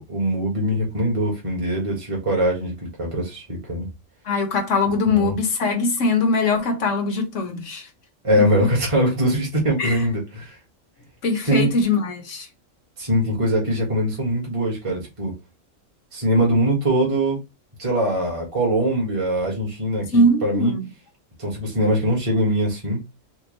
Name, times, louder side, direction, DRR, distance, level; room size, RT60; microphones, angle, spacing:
voice 1, 0.0-3.9 5.1-5.4 8.2-10.5 11.5-11.7 13.0-15.3 16.1-17.4 17.8-20.7 21.4-23.0, equal, 25° right, 1.5 m, -22 dB
voice 2, 4.2-7.9 8.4-8.5 9.8-10.0 11.2-12.5 20.1-20.9, left 2 dB, 70° left, 1.3 m, -21 dB
4.4 x 2.3 x 3.1 m
omnidirectional pair, 1.3 m